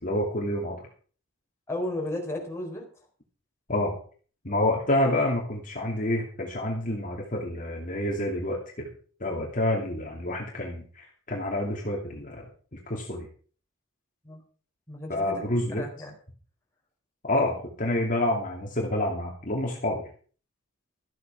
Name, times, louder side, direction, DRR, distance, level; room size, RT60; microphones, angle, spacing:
voice 1, 0.0-0.9 3.7-3.9 4.4-8.9 9.2-12.5 12.7-13.3 15.1-15.8 17.2-20.0, left 1 dB, 45° left, -1 dB, 2.6 m, -28 dB
voice 2, 1.7-2.9 14.2-14.4 14.9-16.1, left 1 dB, 15° left, -1 dB, 4.1 m, -34 dB
14.0 x 8.5 x 5.9 m, 0.43 s
head